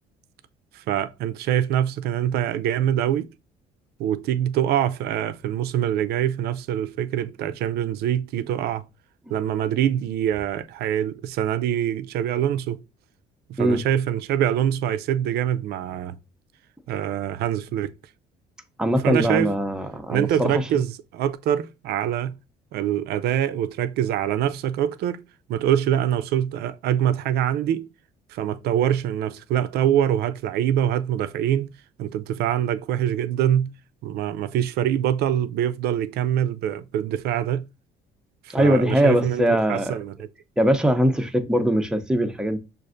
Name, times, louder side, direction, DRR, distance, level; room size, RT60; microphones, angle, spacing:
voice 1, 0.7-3.3 4.0-8.8 9.3-12.8 13.5-16.2 16.9-17.9 19.0-19.5 20.1-22.4 22.7-25.2 25.5-27.9 28.3-31.7 32.0-33.7 34.0-37.7 38.4-39.4 39.7-40.3, right 10 dB, 75° right, 0.4 m, -24 dB
voice 2, 18.8-20.7 38.5-40.0 40.6-42.6, equal, 5° right, 0.6 m, -21 dB
6.3 x 2.5 x 2.5 m
cardioid pair, 110°, 17 cm